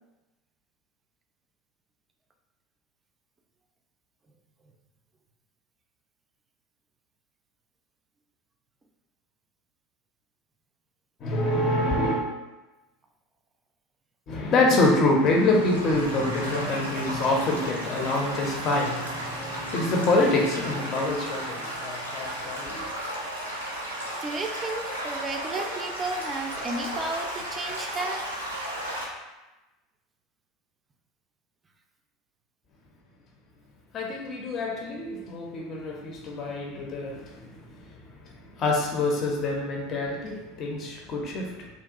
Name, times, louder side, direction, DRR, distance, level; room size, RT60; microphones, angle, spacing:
voice 1, 11.2-12.2 14.3-22.9 33.9-41.7, left 2 dB, 40° left, -1 dB, 0.5 m, -26 dB
Stream / Gurgling / Trickle dribble, 15.2-29.1, right 1 dB, 90° right, 0.4 m, -34 dB
voice 2, 24.2-28.2, right 2 dB, 20° right, 4 dB, 0.3 m, -33 dB
2.8 x 2.3 x 2.4 m, 1.1 s
figure-of-eight pair, 75°, 0 cm